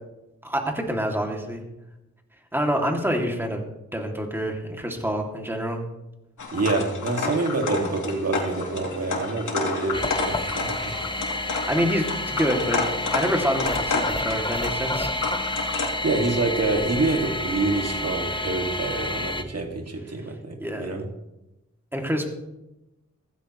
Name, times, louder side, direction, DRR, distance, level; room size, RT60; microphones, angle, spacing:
voice 1, 0.4-1.6 2.5-3.6 3.9-5.8 11.7-12.8 13.1-15.3 20.6-20.9 21.9-22.3, equal, 5° right, 1 dB, 2.5 m, -26 dB
sound 1, 6.4-15.9, left 3 dB, 80° left, 2.9 m, -30 dB
voice 2, 6.5-10.9 16.0-21.1, right 3 dB, 55° right, 3 dB, 2.3 m, -26 dB
sound 2, 9.9-19.4, left 1 dB, 15° left, 1.0 m, -29 dB
16.0 x 15.5 x 3.1 m, 0.95 s
wide cardioid pair, 85°, 30 cm